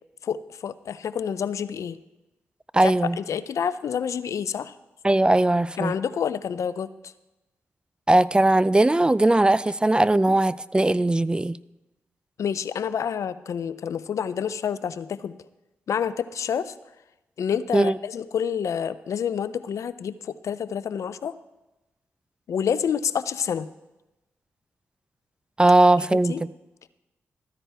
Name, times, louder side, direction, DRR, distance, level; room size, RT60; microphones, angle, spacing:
voice 1, 0.2-2.0 2.8-4.7 5.8-6.9 12.4-15.3 15.9-16.7 17.4-21.4 22.5-23.7 26.0-26.4, left 7 dB, 70° left, 15 dB, 0.5 m, -28 dB
voice 2, 2.7-3.2 5.0-5.9 8.1-11.6 17.7-17.9 25.6-26.5, right 2 dB, 15° right, 18 dB, 0.4 m, -19 dB
13.5 x 9.9 x 3.4 m, 1.0 s
supercardioid pair, 50°, 5 cm